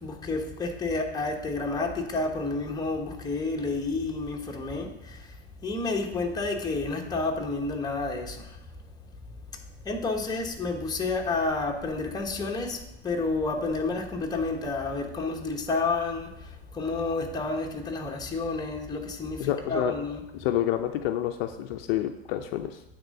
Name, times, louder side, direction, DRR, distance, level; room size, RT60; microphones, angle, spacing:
voice 1, 0.0-5.2 5.6-8.4 9.8-12.8 13.0-16.3 16.7-20.2, left 3 dB, 10° left, 1 dB, 1.1 m, -30 dB
voice 2, 19.4-19.9 20.3-22.8, left 12 dB, 55° left, 7 dB, 0.6 m, -28 dB
8.8 x 3.7 x 5.4 m, 0.95 s
hypercardioid pair, 110°, 35 cm